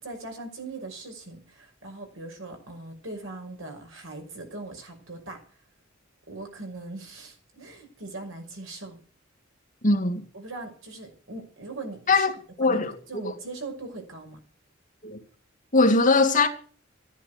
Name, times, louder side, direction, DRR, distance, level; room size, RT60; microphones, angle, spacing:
voice 1, 0.0-5.4 6.3-9.0 10.3-12.3 12.6-14.4, right 2 dB, 80° right, 5.8 m, -40 dB
voice 2, 9.8-10.2 12.1-12.3 12.6-12.9 13.2-13.3 15.0-15.2 15.7-16.5, left 3 dB, 40° left, 2.3 m, -20 dB
14.5 x 10.5 x 8.2 m
head